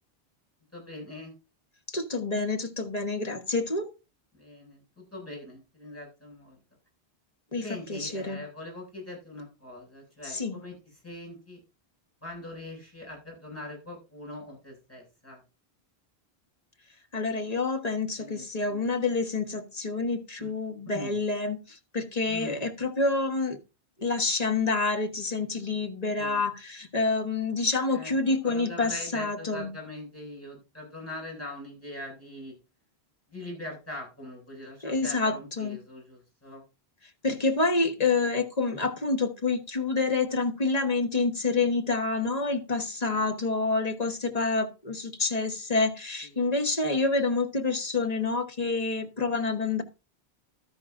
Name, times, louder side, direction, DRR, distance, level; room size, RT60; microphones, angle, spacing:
voice 1, 0.7-1.3 4.3-6.6 7.6-11.6 12.2-15.4 18.2-18.9 20.4-20.5 20.9-21.2 22.3-22.6 26.2-26.4 27.9-32.5 33.3-36.6 43.1-43.3 46.2-46.5, left 1 dB, 15° left, -2 dB, 6.8 m, -42 dB
voice 2, 1.9-3.9 7.5-8.4 10.2-10.6 17.1-23.6 24.0-29.7 34.8-35.8 37.2-49.8, left 3 dB, 40° left, 5 dB, 1.5 m, -28 dB
12.5 x 11.0 x 2.6 m, 0.29 s
omnidirectional pair, 1.1 m